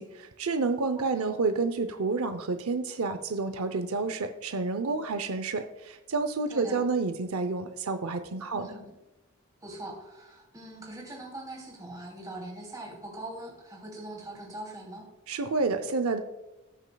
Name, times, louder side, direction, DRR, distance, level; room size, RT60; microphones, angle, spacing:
voice 1, 0.0-8.7 15.3-16.2, right 4 dB, 85° right, 8 dB, 0.7 m, -29 dB
voice 2, 1.0-1.4 6.5-6.8 8.5-9.0 9.6-15.1, right 1 dB, 15° right, -2 dB, 2.8 m, -42 dB
18.5 x 6.5 x 2.3 m, 1.0 s
head